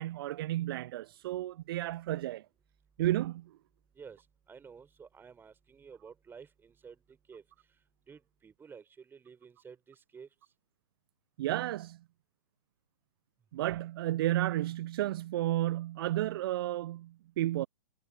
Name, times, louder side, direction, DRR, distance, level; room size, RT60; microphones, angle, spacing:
voice 1, 0.0-2.5 3.0-3.6 11.4-12.0 13.5-17.7, right 14 dB, 40° right, 0.6 m, -32 dB
voice 2, 4.0-7.4 8.1-10.3, right 6 dB, 10° right, 3.7 m, -52 dB
figure-of-eight pair, 120°, 20 cm